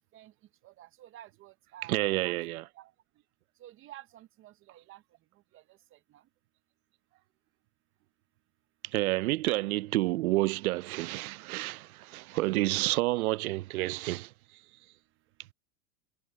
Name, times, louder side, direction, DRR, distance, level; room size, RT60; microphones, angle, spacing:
voice 1, 0.6-2.4 2.8-2.9 3.6-5.0 5.5-5.6 5.9-6.2 12.8-12.9, right 13 dB, 30° right, 0.7 m, -51 dB
voice 2, 1.9-2.7 8.8-14.3, right 19 dB, 75° right, 0.6 m, -29 dB
hypercardioid pair, 120°, 44 cm